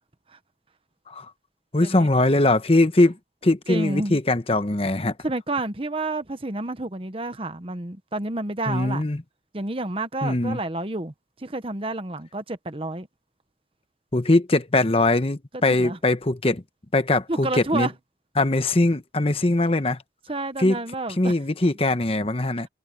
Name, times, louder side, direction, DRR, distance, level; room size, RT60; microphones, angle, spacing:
voice 1, 1.7-3.2 3.4-5.1 8.7-9.2 10.2-10.6 14.1-16.6 16.9-17.9 18.4-20.0 20.6-20.8 21.2-22.7, left 2 dB, 35° left, 1.0 m, -21 dB
voice 2, 3.7-4.2 5.2-9.0 9.5-11.1 11.4-13.1 15.8-16.0 17.3-17.9 20.3-21.3, right 2 dB, 30° right, 1.1 m, -29 dB
head